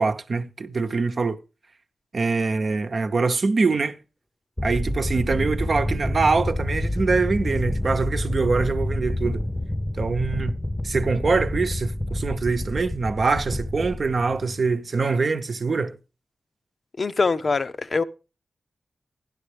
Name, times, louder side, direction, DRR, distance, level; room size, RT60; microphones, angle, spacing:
voice 1, 0.0-1.4 2.1-4.0 4.6-9.4 10.0-10.6 10.8-16.0, right 4 dB, 60° right, 0.8 m, -24 dB
sound 1, 4.6-14.7, left 1 dB, 10° left, 0.7 m, -28 dB
voice 2, 17.0-18.0, left 4 dB, 55° left, 0.6 m, -23 dB
12.0 x 10.5 x 3.3 m
cardioid pair, 50°, 0 cm